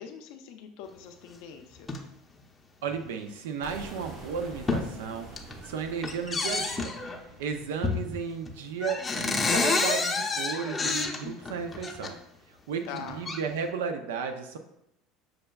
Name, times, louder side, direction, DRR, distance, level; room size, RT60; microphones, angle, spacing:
voice 1, 0.0-1.9 12.9-13.2, left 7 dB, 70° left, 6 dB, 0.5 m, -43 dB
sound 1, 1.8-2.0 2.9-3.1 3.7-3.8 4.2-4.9 5.2-5.7 6.0-7.2 7.8-8.2 8.5-8.6 8.8-12.1 12.8-13.4, left 3 dB, 25° left, 0.6 m, -29 dB
voice 2, 2.8-5.3 5.6-6.9 7.4-12.2 12.7-14.6, right 6 dB, 80° right, 7 dB, 0.4 m, -34 dB
sound 2, 3.6-9.5, right 3 dB, 65° right, 1.0 m, -48 dB
6.2 x 2.3 x 2.2 m, 0.80 s
hypercardioid pair, 85°, 0 cm